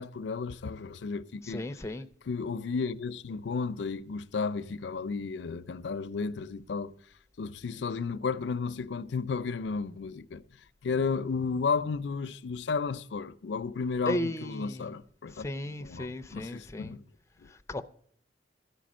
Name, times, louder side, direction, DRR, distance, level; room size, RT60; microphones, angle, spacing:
voice 1, 0.0-1.6 2.3-6.9 7.4-10.4 10.8-17.0 17.4-17.5, left 5 dB, 75° left, 0.5 m, -33 dB
voice 2, 1.4-2.1 14.1-14.9 15.3-17.0 17.5-17.8, left 1 dB, 15° left, 0.5 m, -35 dB
13.0 x 5.1 x 7.3 m
head